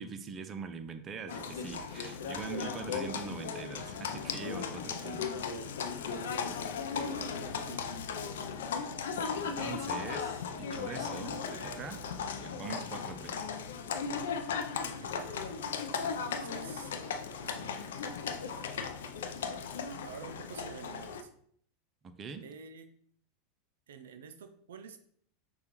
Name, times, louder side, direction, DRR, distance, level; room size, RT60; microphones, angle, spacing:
voice 1, 0.0-5.3 9.3-12.0 12.4-13.4 22.0-22.4, right 5 dB, 30° right, 8 dB, 0.5 m, -43 dB
Livestock farm animals working animals, 1.3-21.2, left 6 dB, 80° left, 0.4 m, -37 dB
voice 2, 7.0-7.8 14.8-15.4 16.0-16.9 17.4-18.0 20.0-21.3 22.4-22.9 23.9-25.0, right 6 dB, 85° right, 8 dB, 0.4 m, -49 dB
6.4 x 2.3 x 3.0 m, 0.62 s
hypercardioid pair, 105°, 0 cm